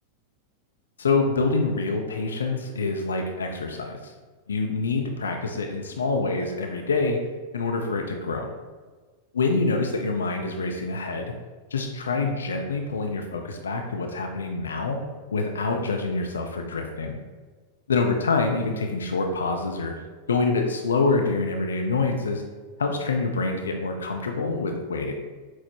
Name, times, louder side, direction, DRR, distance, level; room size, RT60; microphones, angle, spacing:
voice 1, 1.0-4.1 4.5-7.2 7.5-8.5 9.3-11.3 11.7-15.0 15.3-17.2 17.9-19.9 20.3-22.4 22.8-25.1, left 3 dB, 70° left, 3 dB, 0.4 m, -26 dB
6.0 x 2.0 x 2.8 m, 1.4 s
figure-of-eight pair, 90°, 0 cm